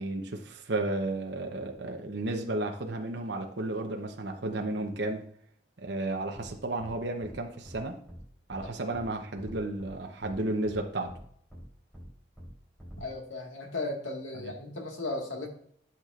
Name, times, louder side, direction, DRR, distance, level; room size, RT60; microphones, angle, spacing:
voice 1, 0.0-5.2 5.8-7.9 8.5-11.1, right 2 dB, 65° right, 3 dB, 0.9 m, -33 dB
sound 1, 6.4-6.5 6.8-6.9 7.2-7.3 7.6-7.8 8.1-8.2 8.5-8.6 8.9-9.1 9.4-9.9 10.2-10.3 10.6-10.8 11.1-11.2 11.5-11.6 11.9-12.1 12.4-12.5 12.8-13.0, equal, 5° left, 3.3 m, -46 dB
voice 2, 13.0-15.5, left 2 dB, 90° left, 1 dB, 1.8 m, -36 dB
11.0 x 5.9 x 2.5 m, 0.63 s
head